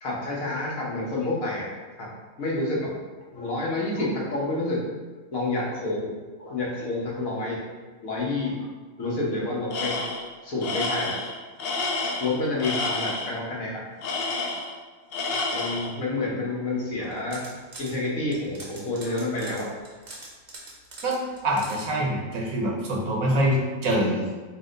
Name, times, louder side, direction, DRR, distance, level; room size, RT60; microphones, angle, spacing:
voice 1, 0.0-1.7 2.0-2.1 2.4-2.9 3.3-4.8 5.3-6.1 6.4-7.6 8.0-8.7 9.0-10.0 10.4-11.1 12.2-13.8 15.5-17.4 17.8-19.7, left 2 dB, 80° left, -4 dB, 1.4 m, -28 dB
Tools, 9.7-10.3 10.6-13.3 14.0-14.8 15.1-15.9, left 3 dB, 60° left, 0.6 m, -29 dB
sound 1, 17.0-17.9 18.3-21.8, right 2 dB, 40° right, 0.7 m, -43 dB
voice 2, 21.4-24.4, right 1 dB, 80° right, -1 dB, 1.3 m, -25 dB
4.7 x 2.1 x 3.8 m, 1.3 s
omnidirectional pair, 1.4 m